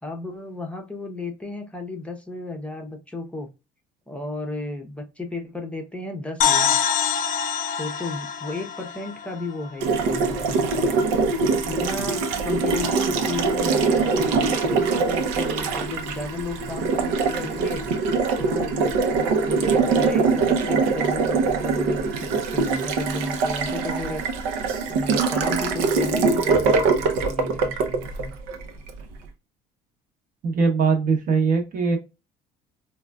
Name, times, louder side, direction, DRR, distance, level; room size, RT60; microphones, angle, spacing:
voice 1, 0.0-3.5 4.1-7.0 7.8-10.6 11.7-17.9 18.4-24.2 24.9-28.3, left 2 dB, 5° left, 0.6 m, -33 dB
sound 1, 6.4-10.0, left 8 dB, 45° left, 0.4 m, -25 dB
Water tap faucet, 9.8-29.0, right 4 dB, 90° right, 0.7 m, -23 dB
voice 2, 30.4-32.0, right 4 dB, 45° right, 0.8 m, -21 dB
3.7 x 2.2 x 2.2 m
cardioid pair, 125°, 19 cm